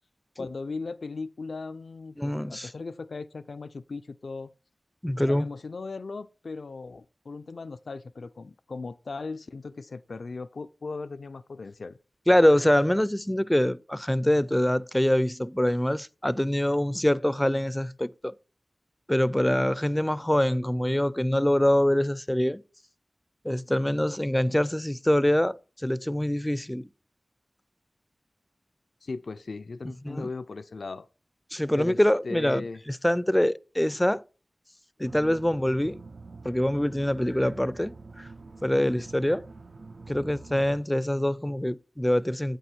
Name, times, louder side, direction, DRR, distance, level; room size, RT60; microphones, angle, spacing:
voice 1, 0.4-4.5 5.3-12.0 29.0-31.1 31.7-32.8, left 3 dB, 85° left, 0.4 m, -38 dB
voice 2, 2.2-2.7 5.0-5.5 12.3-18.3 19.1-22.6 23.4-26.9 30.0-30.3 31.5-34.2 35.0-36.0 36.4-38.3 38.6-39.5 40.1-42.6, left 1 dB, 10° left, 0.4 m, -24 dB
sound 1, 35.0-40.8, right 3 dB, 75° right, 0.6 m, -46 dB
9.1 x 6.8 x 4.3 m
wide cardioid pair, 70°, 0 cm